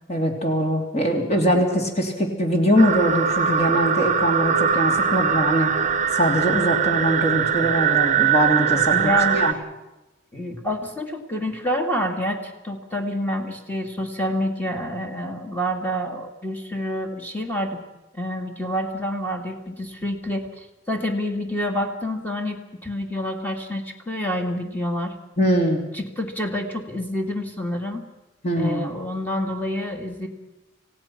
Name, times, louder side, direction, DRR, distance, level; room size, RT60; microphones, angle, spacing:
voice 1, 0.1-5.7 6.1-8.9 9.3-9.5 25.4-25.8 28.4-28.9, equal, 35° left, 2 dB, 3.1 m, -22 dB
sound 1, 2.8-9.5, right 7 dB, 35° right, 0.8 m, -21 dB
voice 2, 8.9-9.4 10.3-17.8 18.1-25.1 25.9-28.0 28.6-30.3, equal, 10° left, 3 dB, 2.2 m, -27 dB
27.5 x 16.5 x 5.9 m, 1.0 s
head